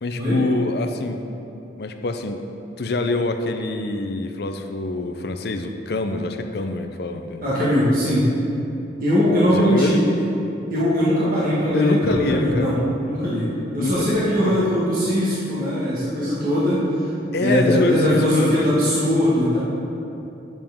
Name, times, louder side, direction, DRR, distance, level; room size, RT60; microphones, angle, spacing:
voice 1, 0.0-1.2 1.8-2.4 2.8-7.4 9.5-10.0 11.7-12.8 13.8-14.7 17.3-18.7, left 2 dB, 55° left, 6 dB, 0.5 m, -25 dB
voice 2, 7.4-8.3 9.0-10.0 10.7-12.8 13.0-13.5 13.7-16.8 17.4-19.6, equal, 45° right, -9 dB, 1.6 m, -20 dB
9.0 x 7.3 x 3.6 m, 2.9 s
head